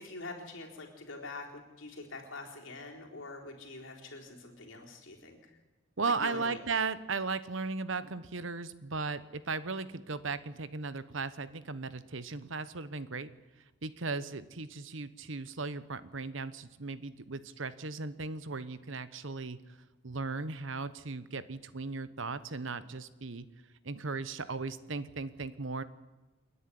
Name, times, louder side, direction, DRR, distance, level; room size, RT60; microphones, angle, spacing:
voice 1, 0.0-5.6 6.1-6.6, left 2 dB, 65° left, 0 dB, 4.1 m, -45 dB
voice 2, 6.0-13.3 13.8-19.6 20.0-23.4 23.8-25.8, right 4 dB, 70° right, 15 dB, 1.1 m, -36 dB
28.0 x 10.0 x 9.9 m, 1.2 s
head